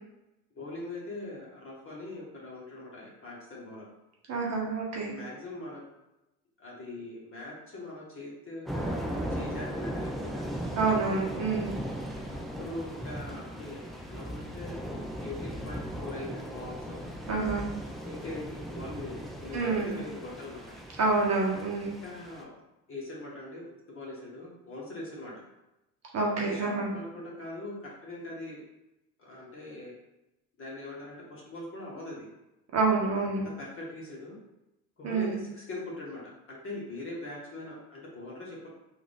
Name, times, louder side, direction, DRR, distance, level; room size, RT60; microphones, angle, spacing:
voice 1, 0.5-3.9 5.0-5.8 6.6-10.4 12.3-17.0 18.0-20.7 22.0-22.5 22.9-25.4 26.4-28.6 29.2-29.9 30.6-32.3 33.2-33.3 33.6-34.4 35.0-38.7, left 2 dB, 30° left, -4 dB, 1.5 m, -42 dB
voice 2, 4.3-5.1 10.8-11.7 17.3-17.6 19.5-20.0 21.0-21.9 26.1-26.9 32.7-33.5 35.0-35.4, right 3 dB, 35° right, -2 dB, 0.9 m, -27 dB
Thunder / Rain, 8.7-22.4, equal, ahead, 0.4 m, -37 dB
3.5 x 2.6 x 3.5 m, 0.95 s
figure-of-eight pair, 65°, 45 cm